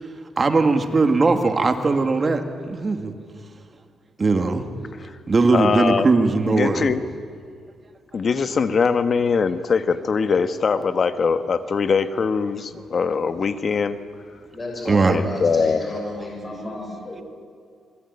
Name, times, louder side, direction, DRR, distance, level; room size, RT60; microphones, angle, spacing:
voice 1, 0.4-3.1 4.2-4.7 5.3-6.9 14.9-15.2 17.2-17.3, right 3 dB, 30° right, 6 dB, 2.3 m, -19 dB
voice 2, 5.5-6.1 6.5-7.0 8.1-14.0 15.0-15.8, left 5 dB, 40° left, 10 dB, 1.5 m, -22 dB
voice 3, 14.5-17.2, left 1 dB, 25° left, 0 dB, 6.5 m, -32 dB
27.0 x 21.5 x 9.8 m, 2.2 s
cardioid pair, 115°, 0 cm